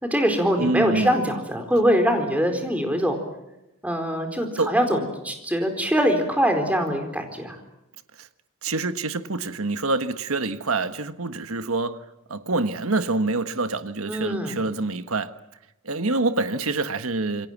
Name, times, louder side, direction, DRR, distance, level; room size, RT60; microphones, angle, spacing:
voice 1, 0.0-3.2 3.8-7.6 14.1-14.6, equal, 5° right, 4.2 m, -23 dB
voice 2, 0.6-1.2 4.6-4.7 8.2-8.3 8.6-12.0 12.3-15.3 15.8-17.5, right 3 dB, 70° right, 1.5 m, -26 dB
28.0 x 23.5 x 7.4 m
head